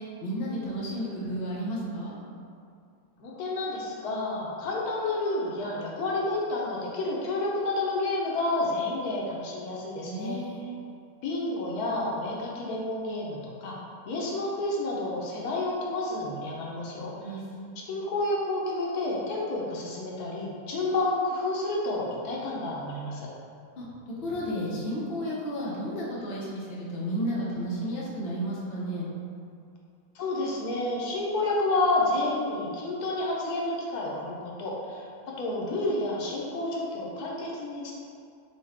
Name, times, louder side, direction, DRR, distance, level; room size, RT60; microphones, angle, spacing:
voice 1, 0.0-2.1 10.0-10.6 16.9-17.8 23.8-23.9 24.2-29.1, equal, 50° left, -5 dB, 0.9 m, -33 dB
voice 2, 3.2-10.4 11.2-13.7 14.1-17.3 17.9-23.3 30.1-38.0, left 2 dB, 80° left, -3 dB, 1.2 m, -30 dB
4.8 x 2.1 x 4.1 m, 2.4 s
omnidirectional pair, 1.6 m